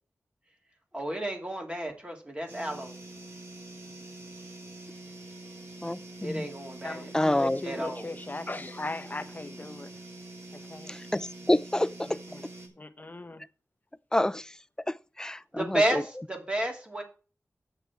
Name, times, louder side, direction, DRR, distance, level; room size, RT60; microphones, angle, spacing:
voice 1, 0.9-2.9 6.2-7.1 7.6-8.1 15.5-17.0, right 1 dB, 20° right, 2.7 m, -31 dB
sound 1, 2.5-12.7, right 2 dB, 50° right, 3.5 m, -45 dB
voice 2, 5.8-6.5 7.1-7.6 10.9-12.2 14.1-14.5 14.9-16.0, left 1 dB, 10° left, 0.4 m, -28 dB
voice 3, 6.8-9.9 10.6-10.9 12.0-12.4 12.8-13.4, left 2 dB, 35° left, 0.9 m, -38 dB
9.4 x 7.8 x 4.6 m
wide cardioid pair, 80°, 6 cm